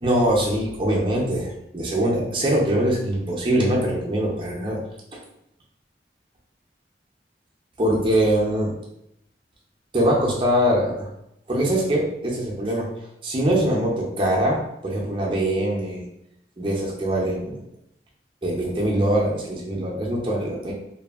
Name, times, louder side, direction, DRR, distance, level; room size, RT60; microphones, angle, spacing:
voice 1, 0.0-4.8 5.1-5.2 7.8-8.7 9.9-11.1 11.5-12.9 13.2-16.1 16.6-17.6 18.4-20.7, right 1 dB, 30° right, -3 dB, 0.5 m, -23 dB
2.6 x 2.6 x 2.4 m, 0.79 s
head